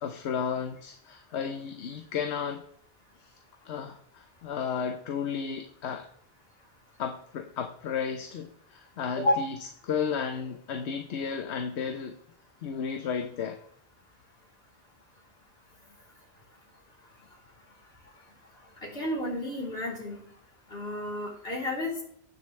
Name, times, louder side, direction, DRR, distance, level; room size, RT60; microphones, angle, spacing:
voice 1, 0.0-2.6 3.2-3.3 3.6-6.1 7.0-9.5 9.8-12.1 12.6-13.6, left 6 dB, 80° left, 6 dB, 1.1 m, -33 dB
voice 2, 18.8-20.2 20.7-22.0, left 1 dB, 65° left, -4 dB, 3.8 m, -31 dB
18.0 x 6.9 x 3.2 m, 0.67 s
omnidirectional pair, 1.1 m